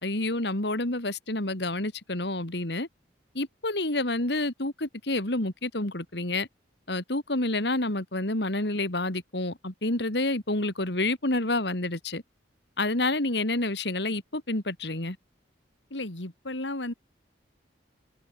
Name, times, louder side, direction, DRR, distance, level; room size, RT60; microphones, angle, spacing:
voice 1, 0.0-2.9 3.3-6.5 6.9-12.2 12.8-15.2, left 2 dB, 65° left, 3.0 m, -28 dB
voice 2, 15.9-16.9, left 1 dB, 85° left, 3.5 m, -34 dB
head